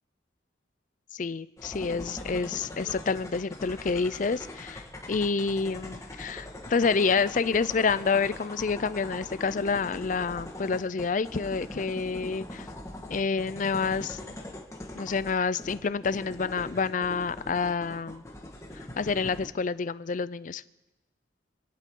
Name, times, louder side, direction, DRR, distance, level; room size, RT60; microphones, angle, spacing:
voice 1, 1.1-12.7 13.1-14.2 14.9-18.2 18.7-20.6, left 5 dB, 45° left, 16 dB, 0.5 m, -28 dB
sound 1, 1.6-19.5, left 1 dB, 15° left, 1.6 m, -42 dB
27.0 x 11.0 x 3.8 m, 1.1 s
head